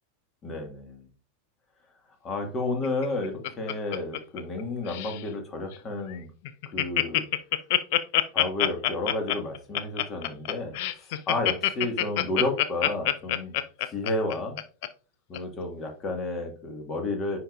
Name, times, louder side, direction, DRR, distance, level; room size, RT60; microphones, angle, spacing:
voice 1, 0.4-1.1 2.2-6.3 6.7-7.3 8.3-13.6 13.9-14.6 15.3-17.4, left 2 dB, 25° left, 5 dB, 1.8 m, -31 dB
Laughter, 2.8-4.6 4.9-5.2 5.7-5.8 6.1-6.2 6.4-14.9 15.3-15.4, left 14 dB, 50° left, 0.5 m, -26 dB
9.8 x 5.0 x 2.5 m, 0.37 s
figure-of-eight pair, 90°, 0 cm